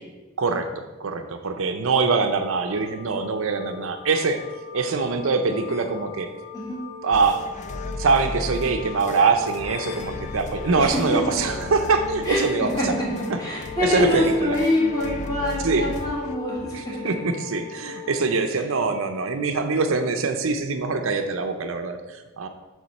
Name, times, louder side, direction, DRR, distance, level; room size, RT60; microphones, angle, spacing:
voice 1, 0.4-4.4 4.7-6.3 7.0-7.4 8.0-12.9 13.8-14.6 15.6-15.9 16.7-22.5, right 4 dB, 70° right, 7 dB, 0.6 m, -23 dB
sound 1, 2.3-18.2, left 7 dB, 80° left, 1.4 m, -39 dB
sound 2, 7.1-16.3, left 2 dB, 35° left, 0.3 m, -36 dB
voice 2, 13.4-16.9, left 1 dB, 15° left, -7 dB, 2.5 m, -24 dB
7.1 x 3.6 x 6.4 m, 1.2 s
head